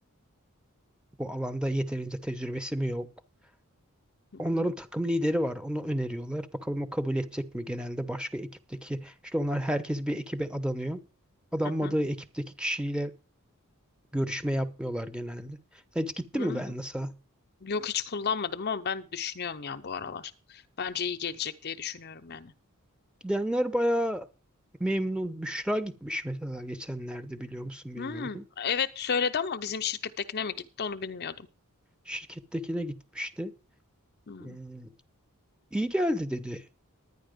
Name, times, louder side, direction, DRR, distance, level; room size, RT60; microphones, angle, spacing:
voice 1, 1.2-3.1 4.4-11.0 11.5-13.1 14.1-15.6 15.9-17.1 23.2-24.3 24.8-28.4 32.1-33.5 34.4-34.9 35.7-36.6, equal, 5° right, 0.9 m, -31 dB
voice 2, 4.3-4.7 11.8-11.9 16.3-16.6 17.6-22.5 28.0-31.5 34.3-34.6, left 6 dB, 45° left, 0.7 m, -33 dB
11.0 x 9.9 x 5.1 m
head